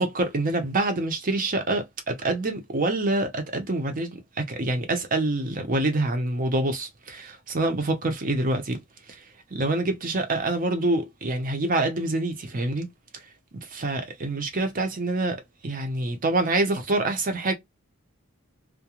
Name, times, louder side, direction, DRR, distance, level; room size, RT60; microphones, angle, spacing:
voice 1, 0.0-8.8 9.1-9.2 9.5-12.9 13.7-17.5, right 2 dB, 40° right, 0.6 m, -26 dB
2.4 x 2.2 x 2.8 m
head